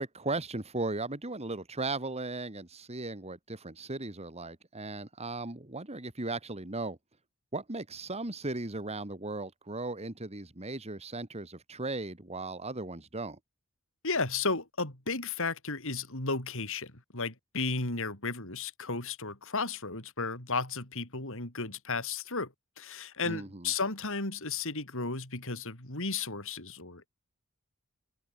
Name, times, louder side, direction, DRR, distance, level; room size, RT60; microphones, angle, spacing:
voice 1, 0.0-7.0 7.5-13.4 23.2-23.7, right 2 dB, 30° right, 2.1 m, -37 dB
voice 2, 14.0-27.1, left 4 dB, 65° left, 6.5 m, -34 dB
head